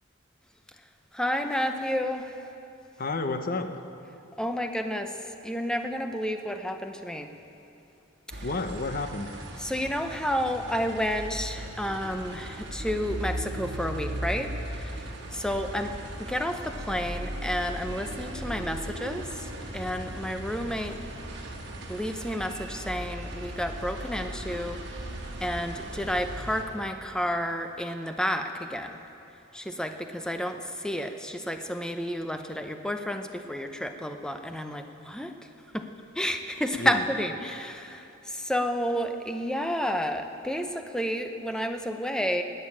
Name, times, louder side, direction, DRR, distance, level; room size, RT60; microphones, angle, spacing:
voice 1, 1.1-2.5 4.4-5.2 5.4-7.3 8.3-8.4 9.6-15.9 16.2-19.5 19.7-21.0 21.9-24.8 25.4-29.0 29.5-35.3 35.7-35.9 36.1-42.4, equal, 5° left, 6 dB, 0.7 m, -31 dB
voice 2, 3.0-3.8 8.4-9.4 36.8-37.0, left 3 dB, 45° left, 8 dB, 0.8 m, -31 dB
sound 1, 8.3-26.6, right 1 dB, 60° right, 1.8 m, -38 dB
18.5 x 6.8 x 8.7 m, 2.7 s
head